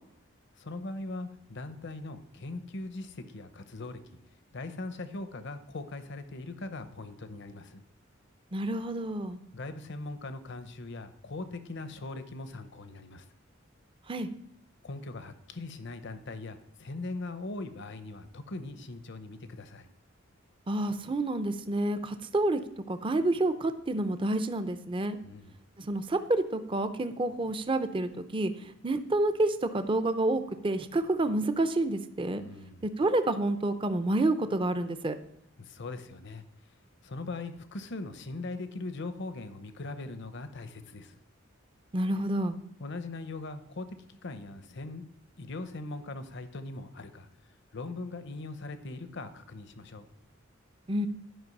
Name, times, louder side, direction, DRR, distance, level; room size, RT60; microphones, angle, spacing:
voice 1, 0.6-4.2 4.5-7.8 9.5-13.2 14.8-19.9 25.2-25.6 32.4-32.9 35.6-36.4 37.0-41.1 42.8-45.0 45.4-47.3 47.7-50.1, left 2 dB, 60° left, 10 dB, 0.8 m, -40 dB
voice 2, 8.5-9.4 14.1-14.3 20.7-22.6 22.9-25.2 25.9-32.4 32.8-35.2 41.9-42.6 50.9-51.1, right 2 dB, 25° right, 9 dB, 0.5 m, -29 dB
11.5 x 5.3 x 5.3 m, 0.77 s
head